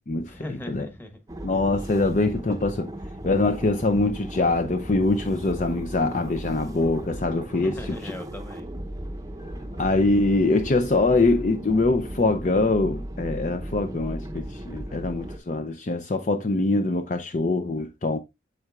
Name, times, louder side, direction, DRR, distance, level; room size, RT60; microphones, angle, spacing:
voice 1, 0.3-1.2 7.5-8.7, left 1 dB, 10° left, 1.3 m, -39 dB
sound 1, 1.3-15.4, right 1 dB, 20° right, 0.7 m, -36 dB
voice 2, 1.4-2.9 3.2-7.8 9.8-18.2, left 2 dB, 40° left, 0.5 m, -23 dB
7.6 x 7.5 x 2.4 m
head